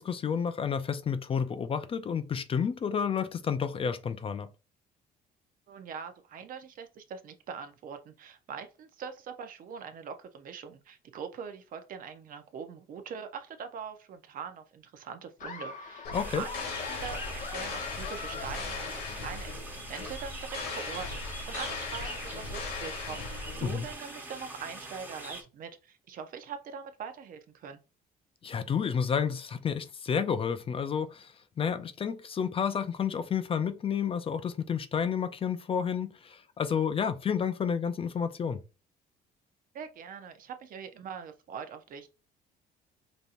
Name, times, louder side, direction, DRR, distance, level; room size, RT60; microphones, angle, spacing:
voice 1, 0.0-4.5 16.1-16.4 23.6-23.9 28.4-38.6, left 7 dB, 35° left, 0.5 m, -30 dB
voice 2, 5.7-16.6 16.9-21.1 21.5-27.8 39.7-42.1, right 6 dB, 55° right, 0.7 m, -42 dB
Laughter, 15.4-19.4, left 5 dB, 50° left, 0.9 m, -43 dB
sound 1, 16.0-23.9, left 4 dB, 70° left, 1.5 m, -39 dB
sound 2, 16.1-25.4, right 2 dB, 10° right, 1.1 m, -43 dB
5.2 x 2.8 x 2.5 m
cardioid pair, 110°, 17 cm